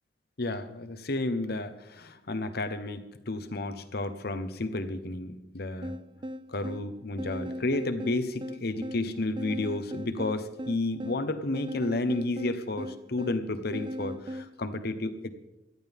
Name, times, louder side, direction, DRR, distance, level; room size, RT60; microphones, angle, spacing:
voice 1, 0.4-5.9 6.5-15.3, left 2 dB, 60° left, 10 dB, 1.1 m, -32 dB
sound 1, 5.8-14.5, equal, 25° right, 0.5 m, -39 dB
17.5 x 12.5 x 3.6 m, 0.95 s
head